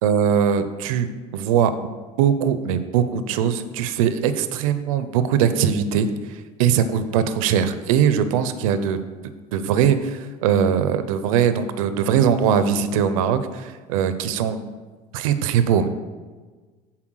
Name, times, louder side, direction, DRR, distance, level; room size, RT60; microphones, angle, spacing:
voice 1, 0.0-1.7 2.2-9.0 9.5-14.6 15.1-15.9, right 8 dB, 90° right, 11 dB, 0.5 m, -21 dB
7.4 x 4.4 x 6.2 m, 1.4 s
supercardioid pair, 95°, 17 cm